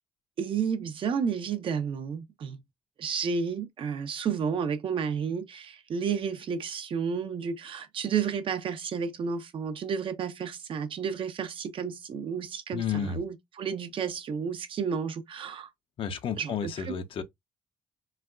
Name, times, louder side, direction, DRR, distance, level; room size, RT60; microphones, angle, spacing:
voice 1, 0.4-2.6 3.0-15.7 16.4-16.9, right 6 dB, 60° right, 0.8 m, -31 dB
voice 2, 12.7-13.2 16.0-17.2, left 7 dB, 60° left, 0.7 m, -31 dB
4.1 x 2.2 x 2.4 m
supercardioid pair, 55°, 10 cm